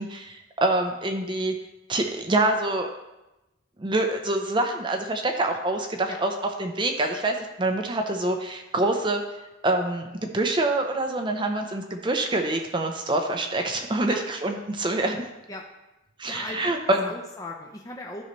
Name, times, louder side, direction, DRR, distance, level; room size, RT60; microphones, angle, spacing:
voice 1, 0.0-1.5 1.9-2.9 3.8-9.2 9.6-15.3 16.2-17.1, right 2 dB, 25° right, 4 dB, 0.5 m, -26 dB
voice 2, 16.3-18.2, left 2 dB, 15° left, -1 dB, 0.6 m, -38 dB
12.5 x 5.6 x 3.1 m, 0.97 s
head